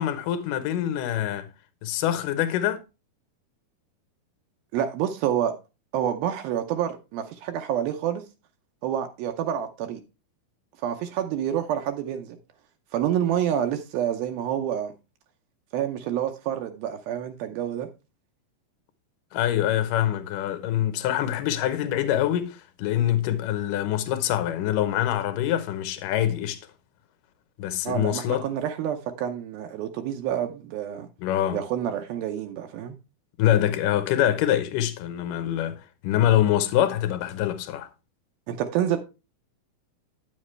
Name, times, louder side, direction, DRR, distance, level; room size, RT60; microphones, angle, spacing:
voice 1, 0.0-1.5 1.8-2.8 19.3-26.6 27.6-28.5 31.2-31.6 33.4-37.9, left 11 dB, 70° left, 2.2 m, -25 dB
voice 2, 4.7-5.5 5.9-8.2 8.8-10.0 10.8-12.4 12.9-14.9 15.7-17.9 27.8-31.1 31.5-33.0 38.5-39.0, right 10 dB, 75° right, 2.4 m, -28 dB
9.1 x 7.3 x 3.2 m
omnidirectional pair, 4.6 m